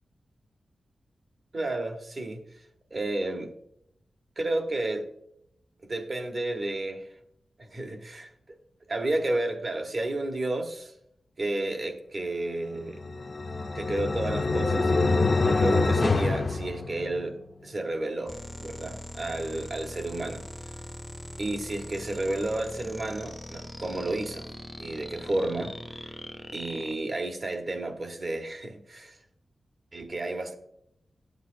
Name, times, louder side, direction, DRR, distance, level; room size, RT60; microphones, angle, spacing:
voice 1, 1.5-2.4 2.9-3.5 4.4-5.1 5.8-7.1 7.6-8.3 8.9-10.9 11.4-13.0 13.7-14.9 15.4-17.4 17.6-20.4 21.4-24.5 24.8-25.8 26.0-26.1 26.5-29.2 29.9-30.5, right 2 dB, 40° right, 1.0 m, -31 dB
sound 1, 12.9-17.5, left 3 dB, 45° left, 0.4 m, -26 dB
sound 2, 18.3-26.9, equal, ahead, 0.6 m, -41 dB
12.5 x 7.9 x 2.6 m
wide cardioid pair, 150°, 0 cm